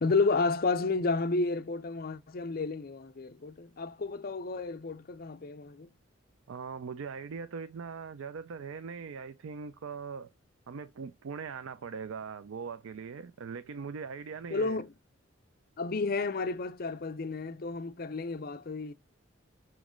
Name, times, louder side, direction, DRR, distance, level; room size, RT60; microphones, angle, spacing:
voice 1, 0.0-5.9 14.5-14.9 15.8-18.9, left 3 dB, 45° left, 0.5 m, -31 dB
voice 2, 6.5-10.3 10.7-14.8, right 5 dB, 75° right, 0.4 m, -41 dB
6.2 x 3.0 x 4.9 m
head